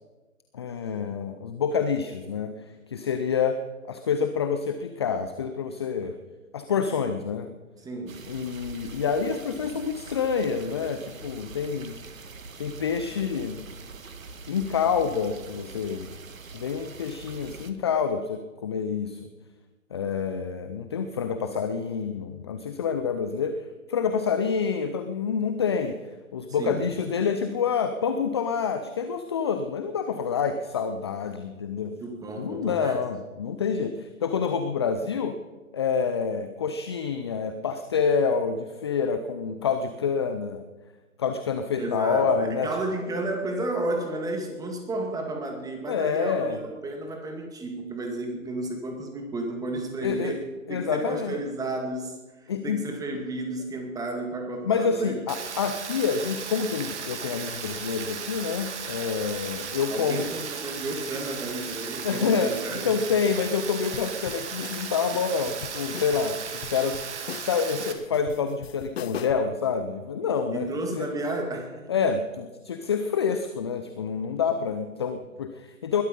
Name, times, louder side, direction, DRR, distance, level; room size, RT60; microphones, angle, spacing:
voice 1, 0.5-6.1 6.5-7.5 8.3-12.0 12.6-13.6 14.5-16.1 16.5-19.3 19.9-26.0 26.3-31.9 32.4-35.4 35.7-40.6 41.2-42.7 45.9-46.6 50.0-50.3 50.7-51.4 52.5-52.8 54.6-60.3 62.0-71.1 71.9-76.0, left 6 dB, 20° left, 9 dB, 0.5 m, -27 dB
voice 2, 7.8-8.2 26.6-26.9 32.0-33.0 41.7-50.4 50.7-55.2 59.9-63.0 70.5-71.8, right 2 dB, 10° right, 3 dB, 2.2 m, -32 dB
sound 1, 8.1-17.7, right 4 dB, 70° right, 1.8 m, -43 dB
Rain, 55.3-67.9, right 6 dB, 55° right, 2.2 m, -36 dB
sound 2, 63.9-69.5, left 9 dB, 45° left, 0.8 m, -40 dB
21.0 x 12.5 x 5.4 m, 1.2 s
figure-of-eight pair, 135°, 41 cm